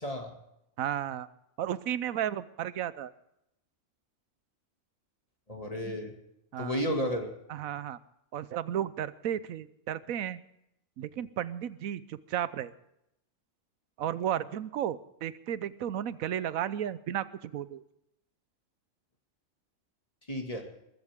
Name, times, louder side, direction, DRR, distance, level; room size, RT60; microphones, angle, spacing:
voice 1, 0.8-1.3 1.6-3.1 5.9-6.0 6.5-6.8 7.5-8.0 8.3-10.4 11.0-12.7 14.0-17.8, right 10 dB, 85° right, 16 dB, 1.2 m, -33 dB
voice 2, 5.5-6.1 6.6-7.3 20.3-20.6, equal, 25° left, 2 dB, 2.3 m, -32 dB
21.5 x 14.5 x 3.6 m, 0.82 s
omnidirectional pair, 1.4 m